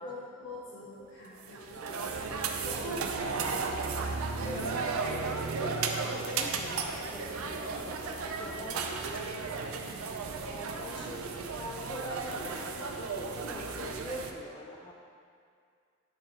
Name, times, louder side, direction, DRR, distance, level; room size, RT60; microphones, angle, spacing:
voice 1, 0.0-2.0 2.6-3.6 9.8-9.9, left 2 dB, 60° left, -9 dB, 1.0 m, -45 dB
sound 1, 1.4-14.3, right 4 dB, 80° right, 0.5 m, -34 dB
voice 2, 4.4-14.9, equal, 20° left, -1 dB, 0.6 m, -44 dB
9.0 x 4.7 x 3.2 m, 2.2 s
head